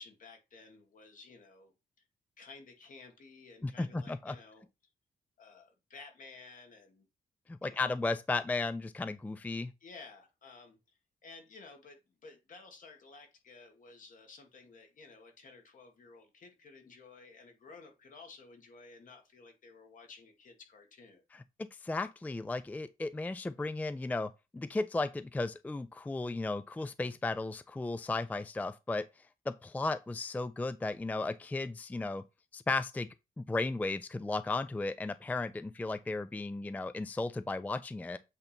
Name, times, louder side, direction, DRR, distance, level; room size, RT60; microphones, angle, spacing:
voice 1, 0.0-1.7 2.4-4.6 5.4-7.1 7.6-8.0 9.8-21.2, left 4 dB, 60° left, 1.9 m, -54 dB
voice 2, 3.6-4.4 7.5-9.7 21.3-29.1 29.5-32.2 32.5-33.1 33.4-38.2, left 3 dB, 10° left, 0.3 m, -35 dB
8.2 x 2.8 x 5.2 m
cardioid pair, 110°, 15 cm